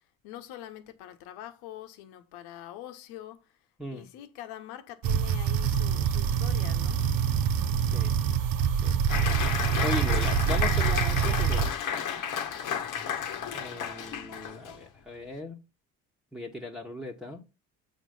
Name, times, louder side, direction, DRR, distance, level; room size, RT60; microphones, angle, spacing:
voice 1, 0.2-3.4 3.9-7.0 12.6-12.9, left 12 dB, 70° left, 1.2 m, -44 dB
sound 1, 5.0-11.7, right 8 dB, 55° right, 0.9 m, -26 dB
Applause, 9.1-14.8, left 8 dB, 50° left, 1.3 m, -32 dB
voice 2, 9.8-11.7 13.5-15.6 16.3-17.4, left 1 dB, ahead, 1.5 m, -37 dB
7.7 x 4.6 x 5.3 m
hypercardioid pair, 55°, 40 cm